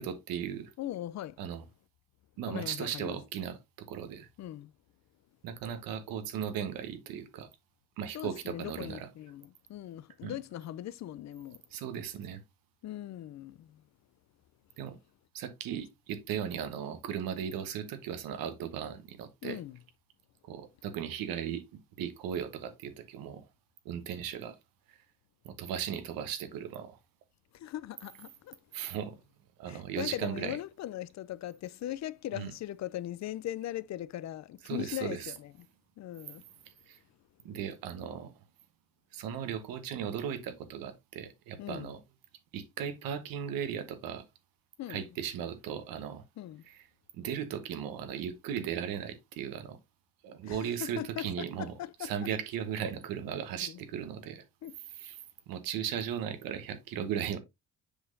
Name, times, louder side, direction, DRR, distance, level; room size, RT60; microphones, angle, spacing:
voice 1, 0.0-0.7 1.4-1.6 2.4-4.3 5.4-7.5 8.0-9.1 10.2-10.4 11.7-12.4 14.8-15.0 15.3-19.6 20.4-23.4 23.8-24.6 24.9-25.0 25.4-27.0 28.7-29.2 29.6-30.6 32.3-32.5 34.7-35.3 36.6-37.0 37.4-38.3 39.1-42.0 42.5-44.2 44.9-46.2 46.7-46.8 47.1-49.8 50.2-51.7 52.0-54.4 55.0-55.2 55.5-57.4, right 8 dB, 85° right, 1.2 m, -37 dB
voice 2, 0.8-1.4 2.5-3.2 4.4-4.7 8.1-11.6 12.8-13.8 19.4-19.8 27.5-28.6 29.7-35.7 36.0-36.4 41.6-41.9 44.8-45.0 46.4-46.7 50.4-52.1 53.6-53.8 54.6-54.8, left 13 dB, 55° left, 0.5 m, -40 dB
6.9 x 5.6 x 2.6 m
cardioid pair, 90°, 34 cm